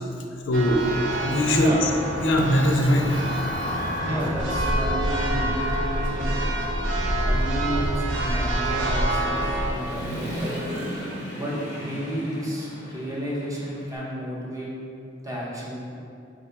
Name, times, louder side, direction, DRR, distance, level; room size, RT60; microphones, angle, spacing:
voice 1, 0.5-0.8 1.2-1.9 2.2-3.1, left 1 dB, 75° left, 2 dB, 0.4 m, -21 dB
Church bell, 0.5-9.7, right 1 dB, 80° right, 0.5 m, -26 dB
voice 2, 1.5-1.8 4.0-6.3 7.2-10.5 11.3-14.7 15.2-15.9, equal, 20° right, -6 dB, 0.7 m, -31 dB
Human voice / Motorcycle, 2.7-2.8 3.2-5.0 5.4-14.0, equal, 45° right, 0.9 m, -38 dB
3.6 x 2.1 x 4.4 m, 2.5 s
head